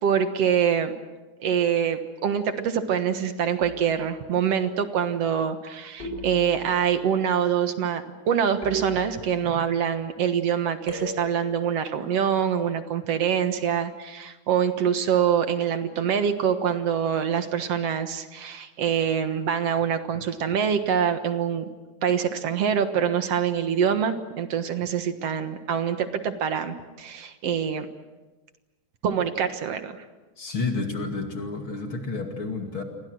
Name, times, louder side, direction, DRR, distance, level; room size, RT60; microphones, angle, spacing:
voice 1, 0.0-0.9 1.4-21.7 22.0-27.9 29.0-30.0, right 8 dB, 60° right, 8 dB, 2.2 m, -25 dB
sound 1, 3.6-4.1 6.0-6.9 8.6-9.6 10.9-11.6, right 2 dB, 15° left, 7.6 m, -36 dB
voice 2, 30.4-32.8, left 3 dB, 40° left, 3 dB, 2.9 m, -30 dB
29.5 x 23.0 x 6.4 m, 1.2 s
omnidirectional pair, 3.7 m